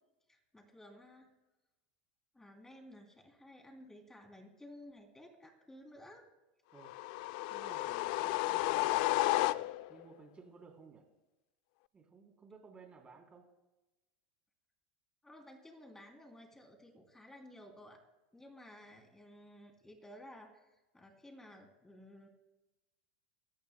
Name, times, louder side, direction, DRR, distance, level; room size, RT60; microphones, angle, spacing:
voice 1, 0.3-1.3 2.3-6.2 15.2-18.0 18.3-20.7 20.9-22.3, left 1 dB, 10° left, 2 dB, 3.2 m, -55 dB
sound 1, 6.8-10.0, left 19 dB, 65° left, 0.4 m, -32 dB
voice 2, 7.5-11.1 11.9-13.5, right 5 dB, 25° right, 1 dB, 3.4 m, -57 dB
23.5 x 14.0 x 2.3 m, 1.0 s
supercardioid pair, 110°, 5 cm